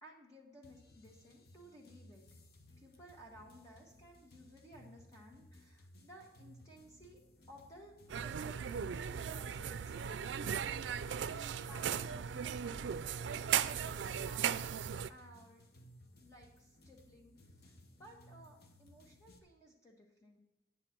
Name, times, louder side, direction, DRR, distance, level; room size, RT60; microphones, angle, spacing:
voice 1, 0.0-2.2 2.8-7.2 7.5-11.3 11.6-14.5 15.1-15.7 16.2-17.4 17.6-20.4, equal, 20° left, -2 dB, 1.5 m, -58 dB
sound 1, 0.6-19.4, left 1 dB, 55° left, 1.0 m, -61 dB
sound 2, 8.1-15.1, right 8 dB, 90° right, 0.4 m, -37 dB
9.7 x 8.0 x 4.5 m, 0.97 s
head